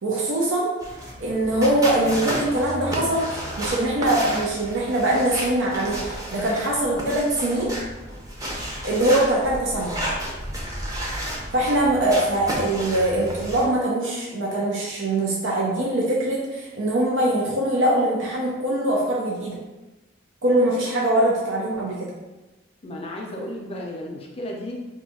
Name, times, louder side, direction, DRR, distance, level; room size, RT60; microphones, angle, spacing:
voice 1, 0.0-0.7 1.2-7.7 8.8-10.0 11.5-19.6 20.4-22.1, right 1 dB, 85° right, -3 dB, 0.6 m, -22 dB
sound 1, 0.8-13.6, equal, 20° right, 0.6 m, -32 dB
voice 2, 22.8-24.8, left 1 dB, 30° left, -1 dB, 0.4 m, -33 dB
2.6 x 2.3 x 4.0 m, 1.1 s
head